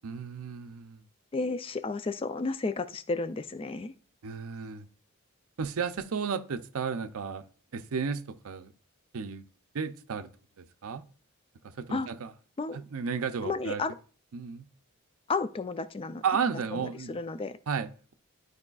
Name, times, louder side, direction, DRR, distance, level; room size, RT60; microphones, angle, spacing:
voice 1, 0.0-1.0 4.2-4.9 5.6-7.4 7.7-8.7 9.1-9.4 9.7-10.3 10.6-11.0 11.8-12.3 12.7-13.8 14.3-14.7 16.2-17.2 17.7-18.1, right 6 dB, 80° right, 0.5 m, -33 dB
voice 2, 1.3-3.9 11.9-12.1 12.6-12.8 13.4-13.9 15.3-16.2 16.7-16.8 17.1-17.6, left 3 dB, 25° left, 0.3 m, -32 dB
12.0 x 4.7 x 2.3 m
head